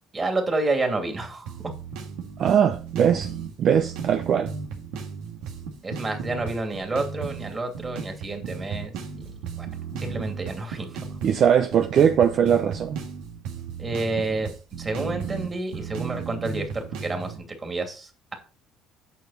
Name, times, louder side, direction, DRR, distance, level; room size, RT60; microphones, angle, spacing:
voice 1, 0.1-1.5 5.8-8.9 9.6-9.7 10.0-11.0 13.8-14.5 14.8-18.3, right 2 dB, 25° right, 2.7 m, -29 dB
sound 1, 1.5-17.4, right 6 dB, 85° right, 2.0 m, -35 dB
voice 2, 2.4-3.3 3.6-4.5 11.2-13.0, right 8 dB, 55° right, 0.8 m, -20 dB
8.6 x 6.3 x 4.3 m
cardioid pair, 100°, 0 cm